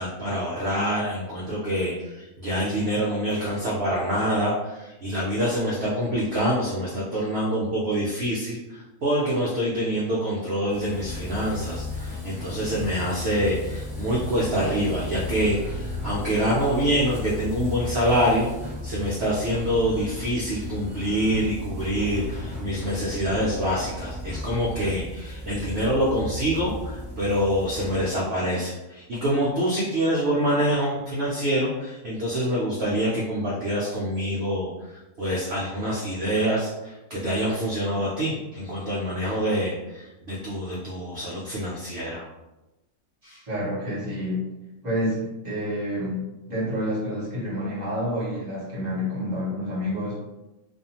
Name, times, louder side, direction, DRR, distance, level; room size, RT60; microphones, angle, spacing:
voice 1, 0.0-18.5 18.8-42.2 43.2-43.4, equal, 80° right, -5 dB, 0.5 m, -26 dB
sound 1, 10.7-28.1, left 1 dB, 5° left, 0.8 m, -35 dB
voice 2, 43.5-44.4 44.8-50.2, equal, 35° right, -7 dB, 0.8 m, -28 dB
2.6 x 2.4 x 2.8 m, 1.0 s
omnidirectional pair, 1.7 m